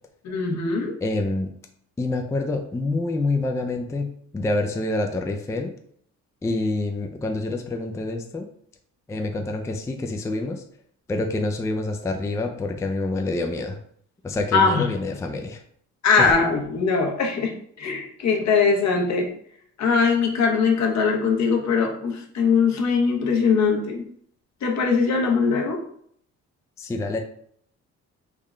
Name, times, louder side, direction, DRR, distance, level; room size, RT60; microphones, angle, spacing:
voice 1, 0.2-1.0 14.5-14.9 16.0-19.3 19.8-24.0 24.6-25.8, left 5 dB, 65° left, 1 dB, 0.9 m, -21 dB
voice 2, 1.0-1.5 2.0-5.7 6.4-8.5 9.1-10.6 11.1-13.8 14.2-15.6 16.2-16.3 26.8-27.2, left 2 dB, 10° left, 4 dB, 0.3 m, -27 dB
3.6 x 2.1 x 3.6 m, 0.65 s
cardioid pair, 90°, 30 cm